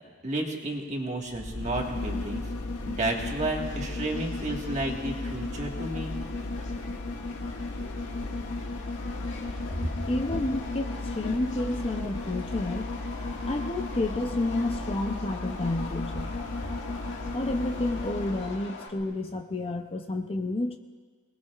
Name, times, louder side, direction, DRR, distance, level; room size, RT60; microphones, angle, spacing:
voice 1, 0.2-2.4 2.8-6.1, right 2 dB, 30° right, 0 dB, 1.6 m, -32 dB
sound 1, 1.3-18.6 19.0-19.1, left 2 dB, 75° left, 1.2 m, -35 dB
Subway metro underground, 2.7-18.9, left 3 dB, 55° left, 1.9 m, -44 dB
voice 2, 10.1-12.9 13.5-16.3 17.3-20.8, left 2 dB, 25° left, 5 dB, 0.6 m, -30 dB
25.5 x 19.5 x 2.4 m, 1.5 s
head